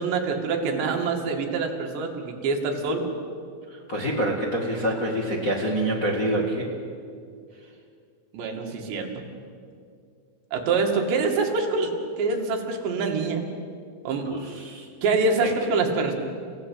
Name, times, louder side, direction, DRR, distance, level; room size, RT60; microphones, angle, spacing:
voice 1, 0.0-3.1 8.3-9.2 10.5-13.4 14.1-14.3 15.0-16.1, right 4 dB, 65° right, 2 dB, 4.3 m, -25 dB
voice 2, 3.7-6.7 14.2-14.8 15.4-15.5, right 1 dB, 75° left, -2 dB, 0.7 m, -26 dB
30.0 x 16.5 x 8.6 m, 2.3 s
omnidirectional pair, 5.5 m